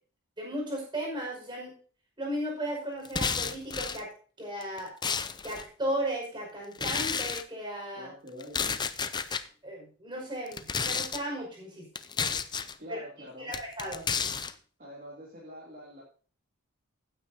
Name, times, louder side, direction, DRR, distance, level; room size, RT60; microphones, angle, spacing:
voice 1, 0.4-1.7 2.2-4.1 4.4-4.9 5.4-8.1 9.6-11.9 12.9-13.0 13.4-14.1, right 1 dB, 20° right, -1 dB, 5.7 m, -35 dB
sound 1, 3.0-4.0 4.6-5.6 6.7-7.4 8.4-9.4 10.5-11.2 11.9-12.7 13.5-14.5, left 6 dB, 20° left, 0.5 m, -31 dB
voice 2, 7.9-8.8 12.8-13.6 14.8-16.0, equal, 40° right, -5 dB, 3.0 m, -45 dB
16.0 x 9.2 x 2.8 m, 0.40 s
head